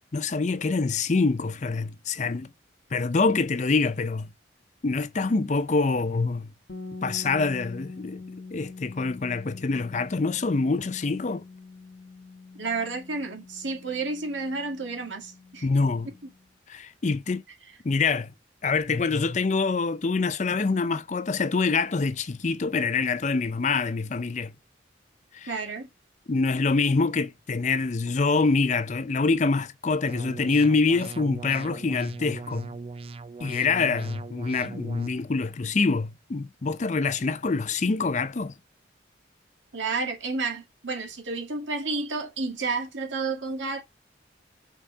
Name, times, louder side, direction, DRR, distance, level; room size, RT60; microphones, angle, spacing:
voice 1, 0.1-2.5 2.9-4.3 4.8-6.5 7.0-8.2 8.5-11.4 15.6-16.1 16.7-17.4 17.8-18.3 18.6-24.5 25.3-25.6 26.3-32.7 33.4-38.5, left 4 dB, 40° left, 0.5 m, -25 dB
sound 1, 6.7-16.4, left 3 dB, 75° left, 1.1 m, -44 dB
voice 2, 12.6-15.7 25.5-25.9 39.7-43.8, right 3 dB, 80° right, 2.0 m, -31 dB
sound 2, 30.1-35.1, right 4 dB, 30° right, 0.3 m, -39 dB
5.4 x 4.1 x 4.7 m
head